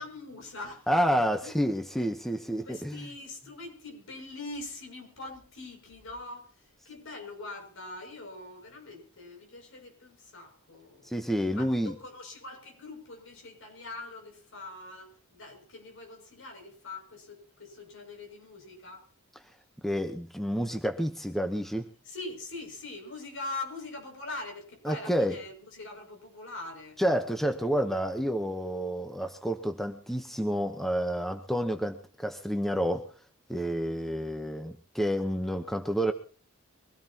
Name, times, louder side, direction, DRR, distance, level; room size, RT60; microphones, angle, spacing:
voice 1, 0.0-0.9 1.4-1.5 2.6-11.3 11.5-19.0 22.0-27.0, left 2 dB, 60° left, 6.8 m, -43 dB
voice 2, 0.9-3.0 11.0-11.9 19.8-21.9 24.8-25.4 27.0-33.1 33.5-36.1, equal, ahead, 1.0 m, -29 dB
23.5 x 17.0 x 3.0 m
head